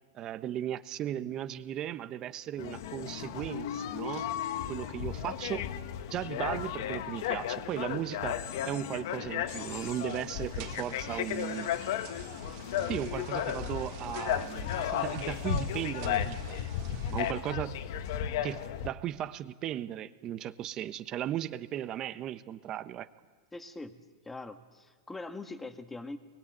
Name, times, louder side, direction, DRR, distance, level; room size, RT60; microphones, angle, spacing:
voice 1, 0.1-4.3 4.7-5.7 6.1-11.7 12.9-16.6 17.1-17.8 18.4-23.1, right 11 dB, 30° right, 12 dB, 1.1 m, -36 dB
sound 1, 2.6-18.9, left 10 dB, 65° left, 1.6 m, -34 dB
sound 2, 9.5-17.3, right 10 dB, 50° right, 3.1 m, -50 dB
voice 2, 23.5-24.0 24.2-26.2, left 2 dB, 10° left, 8 dB, 1.7 m, -42 dB
25.5 x 21.5 x 9.3 m, 1.5 s
supercardioid pair, 140°, 2 cm